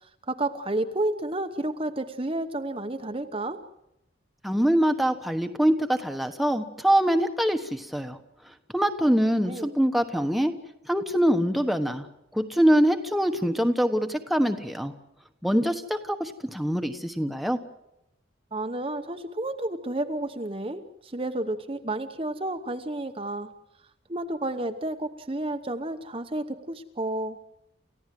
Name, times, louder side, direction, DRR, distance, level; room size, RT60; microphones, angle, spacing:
voice 1, 0.3-3.6 9.5-9.7 18.5-23.5 24.1-27.4, right 1 dB, 30° right, 7 dB, 0.9 m, -31 dB
voice 2, 4.4-8.2 8.4-10.5 10.9-12.1 12.3-14.9 15.4-17.6, equal, ahead, 6 dB, 1.2 m, -24 dB
29.0 x 15.0 x 7.7 m, 0.87 s
head